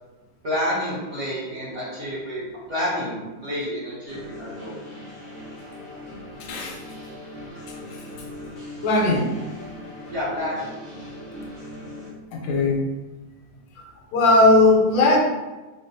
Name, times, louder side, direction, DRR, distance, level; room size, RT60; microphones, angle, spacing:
voice 1, 0.4-4.8 10.1-10.8, left 1 dB, 55° right, -9 dB, 0.8 m, -29 dB
sound 1, 4.1-12.1, left 1 dB, ahead, 0.3 m, -39 dB
voice 2, 6.4-6.8 7.7-8.1 8.8-9.3 12.3-12.8 14.1-15.2, left 2 dB, 85° left, 0 dB, 1.3 m, -18 dB
3.5 x 2.1 x 2.6 m, 1.2 s
omnidirectional pair, 2.0 m